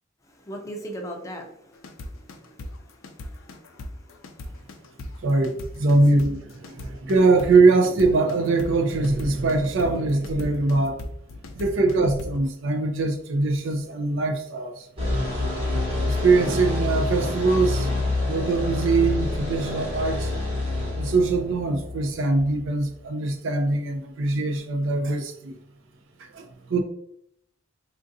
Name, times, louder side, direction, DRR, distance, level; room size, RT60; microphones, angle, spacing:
voice 1, 0.2-5.3, equal, 15° left, 1 dB, 0.5 m, -41 dB
sound 1, 1.7-12.4, left 1 dB, 85° left, 0.5 m, -37 dB
voice 2, 5.2-11.0 11.5-14.9 16.0-17.9 18.3-20.3 20.9-25.5 26.3-26.8, right 3 dB, 65° right, 4 dB, 0.5 m, -22 dB
sound 2, 15.0-23.0, left 2 dB, 30° right, 1.1 m, -27 dB
3.6 x 2.5 x 2.6 m, 0.71 s
head